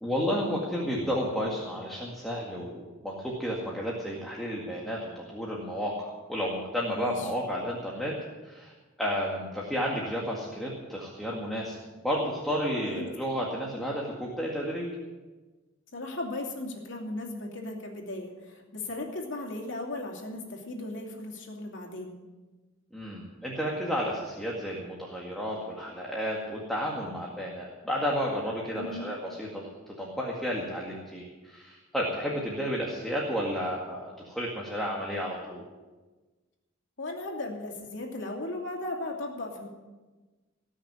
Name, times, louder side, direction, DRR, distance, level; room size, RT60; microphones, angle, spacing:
voice 1, 0.0-8.1 8.4-14.9 22.9-29.7 30.0-35.6, equal, ahead, -4 dB, 2.0 m, -32 dB
voice 2, 6.9-7.3 12.8-13.1 15.9-22.2 28.7-29.1 37.0-39.7, left 2 dB, 65° left, 0 dB, 2.7 m, -37 dB
19.0 x 6.5 x 9.2 m, 1.2 s
head